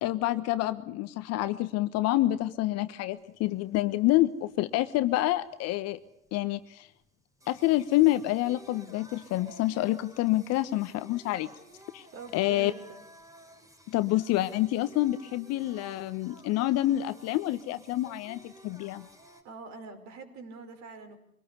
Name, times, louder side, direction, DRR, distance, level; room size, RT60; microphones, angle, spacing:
voice 1, 0.0-6.0 6.3-6.9 7.5-11.5 11.9-12.0 12.3-12.7 13.9-19.1, left 16 dB, 40° left, 12 dB, 1.2 m, -27 dB
Singing, 3.2-19.4, right 1 dB, 10° right, 4.6 m, -55 dB
voice 2, 12.1-13.1 19.4-21.2, right 4 dB, 40° right, 8 dB, 5.3 m, -44 dB
25.0 x 19.0 x 8.4 m, 0.73 s
hypercardioid pair, 95°, 41 cm